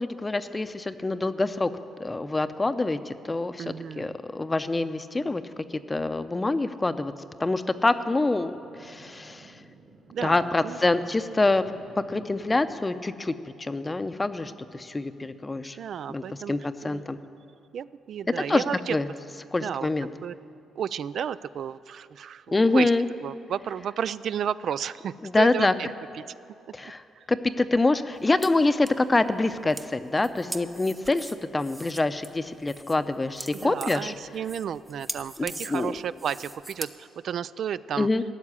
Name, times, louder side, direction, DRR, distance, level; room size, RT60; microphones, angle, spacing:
voice 1, 0.0-1.7 2.0-7.1 7.4-9.6 10.2-11.7 12.1-15.8 16.1-17.2 18.4-18.6 18.9-19.1 19.5-20.1 22.5-23.1 25.2-25.7 26.7-27.0 27.3-34.1 35.4-36.0 38.0-38.2, left 2 dB, 20° left, 11 dB, 0.6 m, -26 dB
voice 2, 3.6-4.2 10.1-10.8 15.8-16.5 16.8-17.2 17.7-19.0 19.6-19.9 20.2-20.3 20.8-22.9 23.2-25.9 26.1-26.2 27.2-27.3 33.5-38.1, right 8 dB, 65° right, 15 dB, 0.3 m, -32 dB
sound 1, 6.9-12.7, right 3 dB, 45° right, 1.7 m, -53 dB
sound 2, 28.2-36.9, right 1 dB, 15° right, 0.7 m, -41 dB
15.5 x 7.2 x 9.8 m, 2.5 s
cardioid pair, 90°, 0 cm